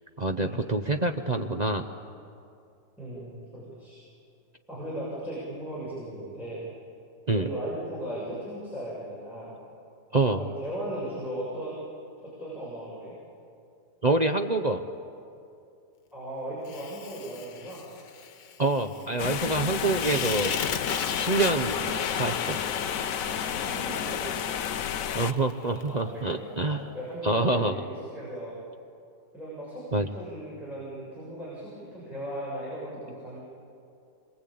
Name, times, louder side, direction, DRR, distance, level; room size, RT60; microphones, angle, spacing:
voice 1, 0.2-1.9 7.3-7.5 10.1-10.4 14.0-14.8 18.6-20.5 21.2-22.6 25.1-26.9 27.2-27.8 29.9-30.1, right 2 dB, 40° right, 4 dB, 0.6 m, -26 dB
voice 2, 3.0-4.0 4.7-6.7 7.4-9.5 10.4-11.7 12.2-13.1 16.1-17.8 23.5-24.2 25.8-28.6 29.3-33.4, right 1 dB, ahead, -8 dB, 7.2 m, -37 dB
Fire, 16.7-25.9, left 7 dB, 75° left, 1.8 m, -35 dB
sound 1, 19.2-25.3, left 9 dB, 60° left, 1.1 m, -31 dB
26.5 x 23.0 x 8.7 m, 2.6 s
omnidirectional pair, 1.9 m